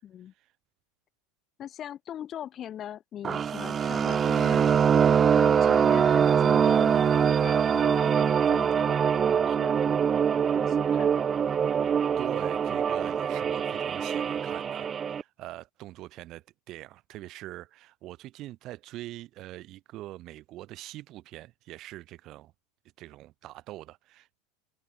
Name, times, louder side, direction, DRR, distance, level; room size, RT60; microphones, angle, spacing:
voice 1, 0.0-0.3 1.6-4.8 5.3-11.3, left 10 dB, 25° left, 5.9 m, -42 dB
sound 1, 3.2-15.2, right 7 dB, 20° right, 0.9 m, -24 dB
voice 2, 12.2-22.5 23.0-24.4, right 16 dB, 35° right, 4.1 m, -43 dB
open air
supercardioid pair, 165°, 0 cm